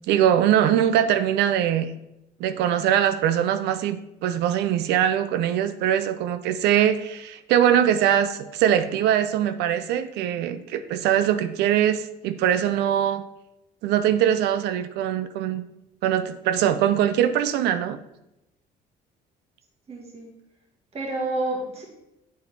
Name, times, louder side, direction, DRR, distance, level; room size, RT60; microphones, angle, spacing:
voice 1, 0.1-1.9 2.4-13.2 13.8-15.6 16.0-18.0, right 10 dB, 85° right, 11 dB, 0.5 m, -22 dB
voice 2, 19.9-20.3 20.9-21.8, right 2 dB, 35° right, -2 dB, 1.8 m, -29 dB
8.5 x 4.0 x 4.2 m, 0.87 s
cardioid pair, 110°, 17 cm